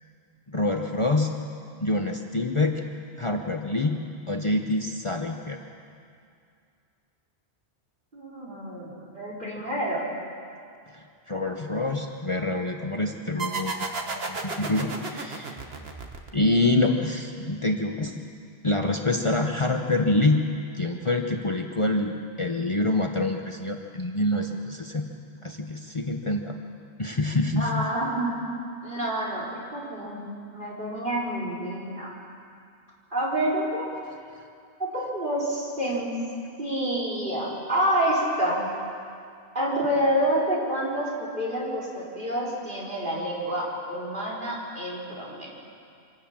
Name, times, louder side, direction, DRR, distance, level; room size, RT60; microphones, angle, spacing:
voice 1, 0.5-1.3 1.8-2.8 3.2-4.0 4.3-5.6 10.9-15.6 16.3-18.2 18.6-20.4 20.7-25.0 25.4-26.6 27.0-27.9, left 2 dB, 30° left, 3 dB, 1.0 m, -26 dB
voice 2, 8.1-10.0 27.6-28.3 28.8-30.2 30.5-32.1 33.1-33.9 34.9-36.1 36.6-38.6 39.5-45.5, right 1 dB, 50° right, -5 dB, 4.9 m, -28 dB
sound 1, 13.4-16.7, right 4 dB, 65° right, 1.7 m, -33 dB
25.0 x 13.5 x 8.8 m, 2.4 s
omnidirectional pair, 1.1 m